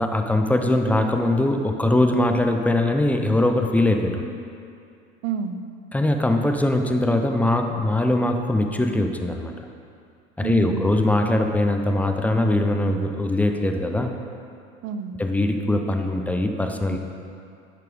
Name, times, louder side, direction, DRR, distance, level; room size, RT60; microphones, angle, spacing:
voice 1, 0.0-4.3 5.9-9.6 10.4-14.1 15.2-17.0, left 1 dB, 5° left, 4 dB, 0.5 m, -21 dB
voice 2, 5.2-5.6 10.4-10.9 14.8-15.2 16.9-17.0, right 7 dB, 45° right, 8 dB, 0.6 m, -29 dB
10.5 x 4.3 x 4.9 m, 2.4 s
figure-of-eight pair, 70°, 35 cm